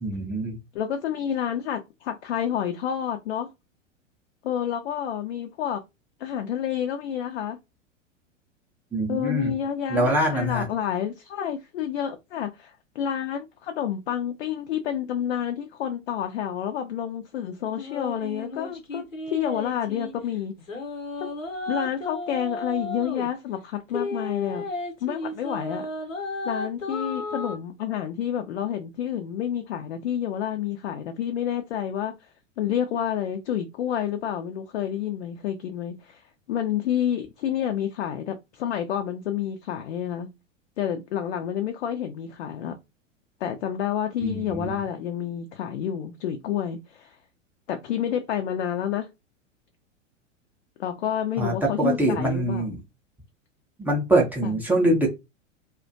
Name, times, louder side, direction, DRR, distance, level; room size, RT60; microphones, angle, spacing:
voice 1, 0.0-0.6 8.9-9.5 9.9-10.7 44.2-44.7 51.4-52.8 53.8-55.1, right 1 dB, 5° right, 0.5 m, -24 dB
voice 2, 0.7-3.5 4.4-5.8 6.2-7.6 9.1-20.5 21.2-21.3 21.7-24.6 25.0-25.9 26.4-32.1 32.6-36.2 36.5-40.3 40.8-42.8 43.4-47.1 47.7-49.1 50.8-52.8 54.4-54.6, left 9 dB, 60° left, 0.5 m, -29 dB
sound 1, 17.7-20.1 20.6-23.3 23.9-27.6, left 2 dB, 80° left, 0.8 m, -33 dB
2.4 x 2.2 x 2.4 m
figure-of-eight pair, 95°, 39 cm